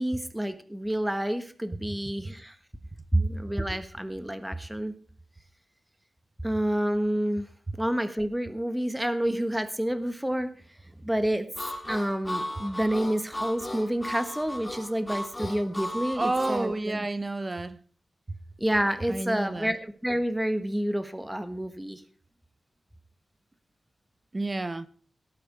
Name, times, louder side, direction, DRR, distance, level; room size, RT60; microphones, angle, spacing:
voice 1, 0.0-2.6 3.1-4.9 6.4-7.5 7.8-10.5 11.0-11.5 11.9-17.0 18.6-22.0, right 1 dB, 5° right, 1.3 m, -29 dB
Harmonica, 11.5-16.6, left 1 dB, 15° left, 4.4 m, -35 dB
voice 2, 16.1-17.8 19.1-19.7 24.3-24.9, right 2 dB, 25° right, 0.8 m, -30 dB
18.0 x 8.8 x 5.1 m
wide cardioid pair, 130°, 0 cm